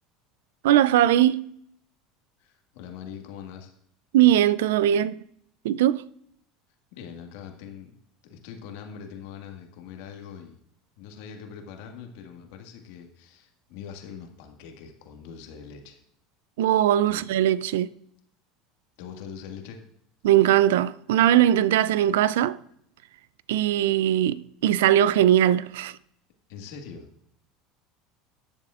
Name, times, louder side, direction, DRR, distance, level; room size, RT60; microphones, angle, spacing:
voice 1, 0.6-1.5 4.1-5.2 5.6-6.0 16.6-17.9 20.2-22.6 23.5-26.0, right 12 dB, 80° right, 0.4 m, -20 dB
voice 2, 2.4-3.7 6.9-7.9 8.2-10.6 11.0-16.0 17.1-17.2 19.0-19.8 26.5-27.1, left 7 dB, 70° left, 1.7 m, -42 dB
18.5 x 7.2 x 2.5 m
hypercardioid pair, 85°, 0 cm